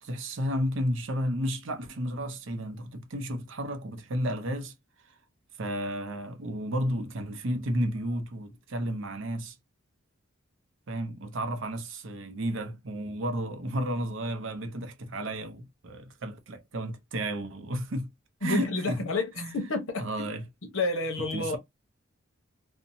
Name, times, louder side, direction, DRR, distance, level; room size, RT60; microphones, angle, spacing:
voice 1, 0.0-4.7 5.6-9.6 10.9-18.1 18.4-19.0 19.4-19.6 20.0-20.4 21.3-21.6, equal, 65° right, 0.6 m, -32 dB
voice 2, 18.4-20.1 20.7-21.6, left 2 dB, 75° left, 0.9 m, -29 dB
2.7 x 2.1 x 2.6 m
head